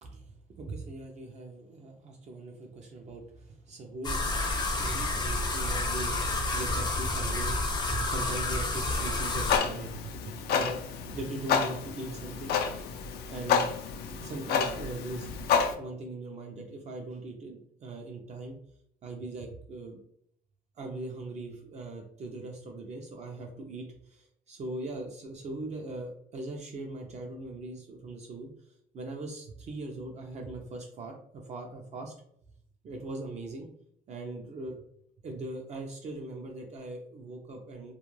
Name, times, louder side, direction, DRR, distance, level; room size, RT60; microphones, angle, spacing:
voice 1, 0.0-0.3 0.6-4.4 4.8-12.9 13.3-13.7 14.2-15.3 15.8-18.6 19.0-20.0 20.8-28.5 28.9-32.1 32.8-33.7 34.1-34.8 35.2-37.9, right 2 dB, 40° right, 1 dB, 0.5 m, -40 dB
sound 1, 4.0-9.6, left 2 dB, 25° left, 0.6 m, -30 dB
Clock, 9.2-15.7, left 6 dB, 70° left, 0.4 m, -30 dB
2.3 x 2.1 x 3.1 m, 0.70 s
cardioid pair, 110°, 17 cm